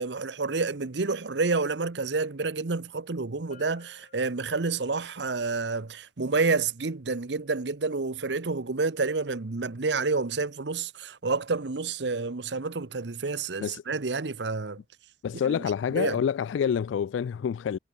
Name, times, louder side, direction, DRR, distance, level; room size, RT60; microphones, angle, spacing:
voice 1, 0.0-14.8 15.4-15.6 15.9-16.2, right 4 dB, 70° right, 0.9 m, -29 dB
Bell, 3.5-5.1, left 3 dB, 45° left, 3.0 m, -55 dB
voice 2, 15.2-17.8, left 7 dB, 90° left, 0.3 m, -27 dB
head